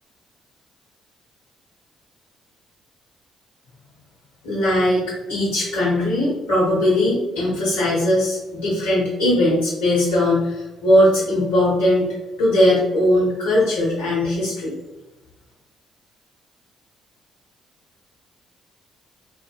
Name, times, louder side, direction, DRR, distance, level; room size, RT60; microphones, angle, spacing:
voice 1, 4.4-14.7, left 1 dB, 80° left, -8 dB, 1.0 m, -19 dB
3.8 x 2.1 x 3.3 m, 1.1 s
hypercardioid pair, 45°, 0 cm